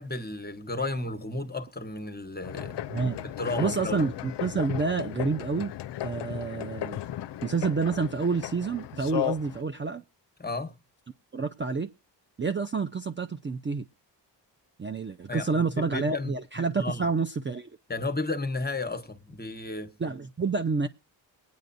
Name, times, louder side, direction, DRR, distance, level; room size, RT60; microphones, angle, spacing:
voice 1, 0.0-2.8 3.2-4.0 10.4-10.8 15.3-16.3 16.8-17.1 17.9-19.9, left 2 dB, 20° left, 1.1 m, -33 dB
sound 1, 2.4-9.6, left 13 dB, 65° left, 0.5 m, -35 dB
voice 2, 2.9-3.3 3.6-5.7 6.0-7.0 7.4-10.0 11.3-11.9 12.4-13.8 14.8-17.8 20.0-20.9, right 4 dB, 25° right, 0.6 m, -28 dB
21.5 x 9.5 x 2.6 m
cardioid pair, 70°, 45 cm